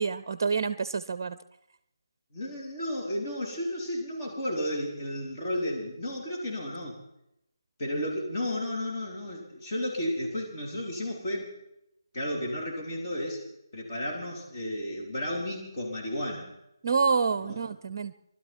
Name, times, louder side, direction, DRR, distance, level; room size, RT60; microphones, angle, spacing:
voice 1, 0.0-1.4 16.8-18.1, right 5 dB, 40° right, 13 dB, 0.7 m, -27 dB
voice 2, 2.3-7.0 7.8-11.5 12.1-13.4 13.7-16.5 17.4-17.6, left 1 dB, 35° left, -3 dB, 4.1 m, -33 dB
23.0 x 12.5 x 4.5 m, 0.82 s
figure-of-eight pair, 155°, 2 cm